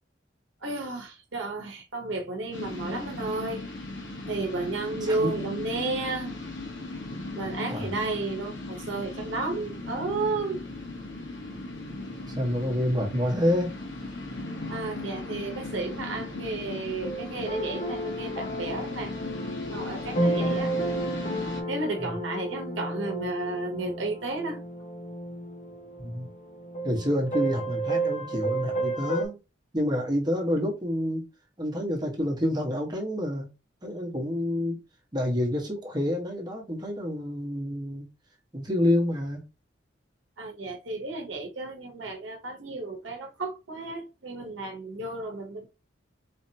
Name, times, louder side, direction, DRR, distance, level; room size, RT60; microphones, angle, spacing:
voice 1, 0.6-3.7 4.2-6.3 7.3-10.6 14.7-19.1 19.7-20.7 21.7-24.6 40.4-45.7, right 2 dB, 85° right, 0.9 m, -33 dB
sound 1, 2.5-21.6, left 2 dB, 90° left, 1.0 m, -37 dB
voice 2, 5.0-5.3 7.7-8.0 12.3-13.8 22.0-22.2 26.0-26.3 26.8-29.4 29.7-31.2 31.6-33.5 33.8-34.8 35.1-38.1 38.5-39.4, left 1 dB, 20° right, 1.1 m, -28 dB
sound 2, 17.0-29.3, right 1 dB, 35° left, 0.7 m, -32 dB
4.3 x 2.8 x 2.7 m
head